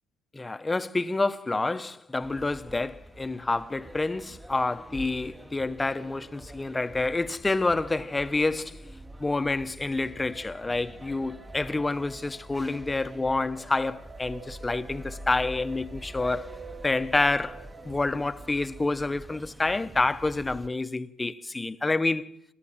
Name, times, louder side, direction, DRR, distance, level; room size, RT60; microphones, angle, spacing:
voice 1, 0.3-8.9 9.2-16.6 16.8-22.3, left 3 dB, 20° left, 0.9 m, -28 dB
sound 1, 2.2-20.7, right 1 dB, 10° right, 1.1 m, -46 dB
sound 2, 5.0-7.7 10.0-18.0, right 5 dB, 35° right, 4.5 m, -49 dB
26.5 x 13.5 x 7.4 m
supercardioid pair, 65°, 0 cm